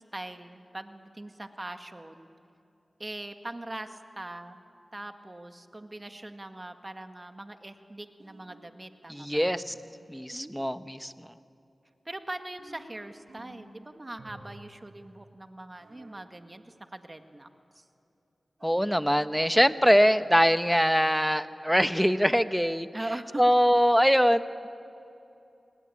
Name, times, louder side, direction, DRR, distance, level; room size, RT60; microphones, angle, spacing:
voice 1, 0.0-2.3 3.0-4.6 4.9-9.5 10.3-11.1 12.1-17.5 17.7-17.9 22.9-23.4, right 1 dB, 30° right, 6 dB, 1.8 m, -41 dB
sound 1, 8.2-8.7 9.4-9.9 12.6-13.8 14.2-14.8 15.8-16.3 18.6-19.1 20.2-20.7, right 2 dB, 85° right, 4.0 m, -52 dB
voice 2, 9.1-9.7 10.1-11.1 18.6-22.9 23.4-24.7, equal, ahead, 11 dB, 1.0 m, -23 dB
28.5 x 20.0 x 8.7 m, 2.7 s
cardioid pair, 50°, 0 cm